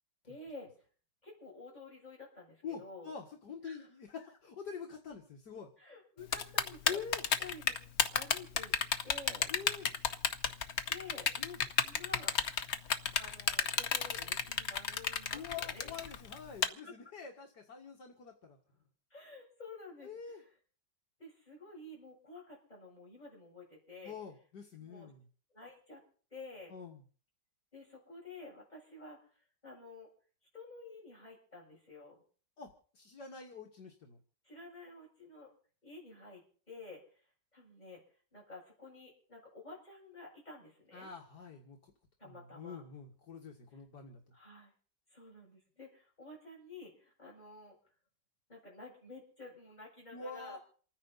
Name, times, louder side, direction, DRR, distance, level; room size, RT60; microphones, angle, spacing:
voice 1, 0.2-0.7 1.2-3.1 3.6-3.9 5.8-7.0 7.4-7.7 8.1-8.8 9.0-9.5 10.9-11.3 11.8-12.4 13.2-15.9 16.7-16.9 19.1-20.5 21.2-24.1 24.8-25.1 25.5-26.0 26.3-26.7 27.7-29.2 29.6-30.1 30.5-32.2 34.4-35.5 35.8-37.0 37.5-38.0 38.3-41.1 42.2-42.8 44.3-44.7 45.1-47.8 48.5-50.6, left 3 dB, 25° left, -3 dB, 7.4 m, -51 dB
voice 2, 2.6-5.7 6.9-7.2 9.5-9.9 11.4-11.6 15.3-18.6 20.0-20.4 24.0-25.2 26.7-27.0 32.6-34.2 40.9-41.9 42.2-44.2 50.1-50.6, left 6 dB, 70° left, 1 dB, 2.3 m, -46 dB
Typing, 6.3-16.7, left 7 dB, 50° left, 0.9 m, -31 dB
28.5 x 10.0 x 4.1 m, 0.43 s
omnidirectional pair, 1.9 m